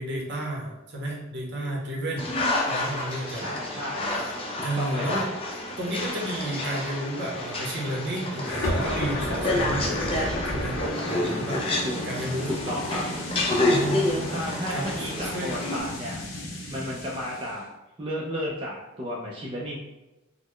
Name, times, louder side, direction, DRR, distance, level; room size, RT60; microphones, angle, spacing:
voice 1, 0.0-2.3 2.7-3.4 4.1-4.3 4.6-5.3 5.8-11.6 12.0-12.5 13.7-14.3 14.7-15.6, right 1 dB, 60° right, -2 dB, 0.9 m, -32 dB
sound 1, 2.2-15.8, left 2 dB, 30° left, 0.6 m, -29 dB
voice 2, 3.3-4.1 4.5-5.2 11.8-12.0 12.5-13.1 14.3-16.2 16.7-17.7 18.0-19.8, equal, 25° right, -4 dB, 0.4 m, -33 dB
sound 2, 8.4-17.6, left 1 dB, 70° left, 0.7 m, -33 dB
4.0 x 2.0 x 3.1 m, 1.0 s
head